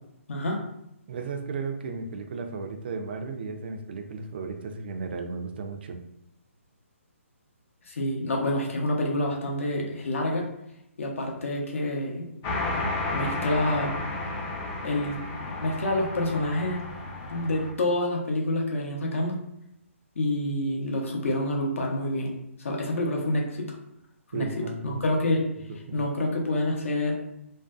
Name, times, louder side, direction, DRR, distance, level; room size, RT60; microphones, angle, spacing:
voice 1, 1.1-6.0 24.3-25.0 25.9-26.0, right 4 dB, 45° right, 5 dB, 0.3 m, -34 dB
voice 2, 7.8-10.5 11.0-12.3 13.1-13.9 14.8-15.2 15.6-16.8 17.3-19.4 20.2-23.7 24.3-24.5 24.8-25.4 25.9-27.2, left 1 dB, 65° left, 0 dB, 0.7 m, -27 dB
sound 1, 12.4-17.7, left 2 dB, 20° left, 0.4 m, -32 dB
2.5 x 2.1 x 2.3 m, 0.82 s
figure-of-eight pair, 145°, 8 cm